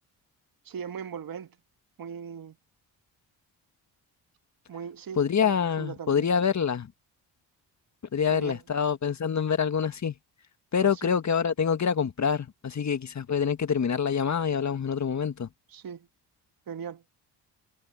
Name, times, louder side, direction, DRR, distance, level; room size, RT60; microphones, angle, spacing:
voice 1, 0.7-1.6 2.0-2.6 4.7-6.3 8.3-8.6 10.8-11.1 15.7-16.1 16.7-17.0, right 7 dB, 55° right, 2.0 m, -39 dB
voice 2, 5.2-6.9 8.1-10.1 10.7-15.5, left 7 dB, 40° left, 1.7 m, -26 dB
supercardioid pair, 60°, 42 cm